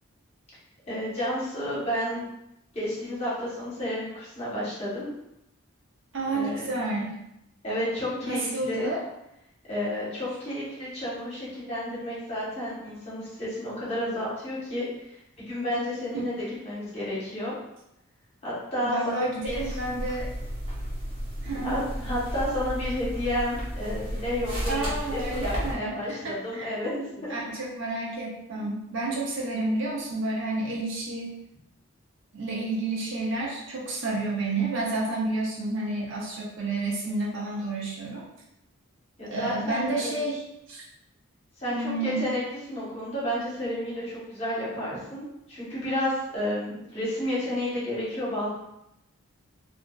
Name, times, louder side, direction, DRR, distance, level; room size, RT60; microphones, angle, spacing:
voice 1, 0.9-2.3 2.7-5.1 6.3-6.7 7.6-8.9 9.7-14.9 15.4-16.3 16.6-17.6 18.4-19.1 19.4-19.6 21.6-27.4 39.2-40.2 41.6-41.7 42.0-42.4 42.7-48.5, left 1 dB, 30° left, -8 dB, 0.9 m, -31 dB
voice 2, 6.1-7.2 8.1-9.0 18.8-20.3 21.4-21.8 24.7-31.4 32.3-38.2 39.3-40.8 41.7-42.3, right 2 dB, 60° right, -4 dB, 0.6 m, -30 dB
sound 1, 19.4-25.7, equal, 25° right, 0.7 m, -33 dB
2.5 x 2.3 x 2.2 m, 0.85 s
head